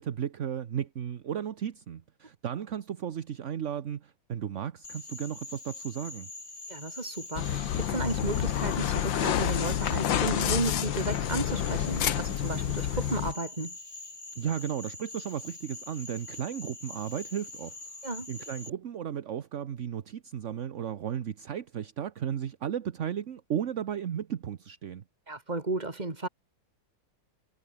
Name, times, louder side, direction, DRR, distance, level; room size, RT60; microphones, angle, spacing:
voice 1, 0.0-6.3 14.4-17.7 18.3-25.0, right 9 dB, 50° right, 1.0 m, -34 dB
Frog, 4.8-18.7, left 2 dB, 35° left, 4.8 m, -44 dB
voice 2, 6.7-13.8 18.0-18.3 25.3-26.3, right 2 dB, 20° right, 2.8 m, -33 dB
sound 1, 7.4-13.3, left 10 dB, 80° left, 1.9 m, -29 dB
omnidirectional pair, 2.1 m